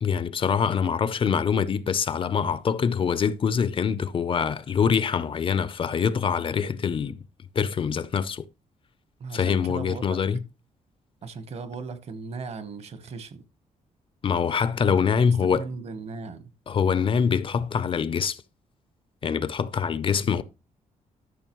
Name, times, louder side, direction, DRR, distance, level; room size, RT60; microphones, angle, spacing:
voice 1, 0.0-7.2 7.5-8.4 9.3-10.4 14.2-15.6 16.7-18.4 19.2-20.4, left 6 dB, 40° left, 0.6 m, -24 dB
voice 2, 9.2-10.2 11.2-13.4 15.2-16.5, right 4 dB, 50° right, 1.2 m, -37 dB
12.5 x 6.5 x 3.1 m
cardioid pair, 130°, 14 cm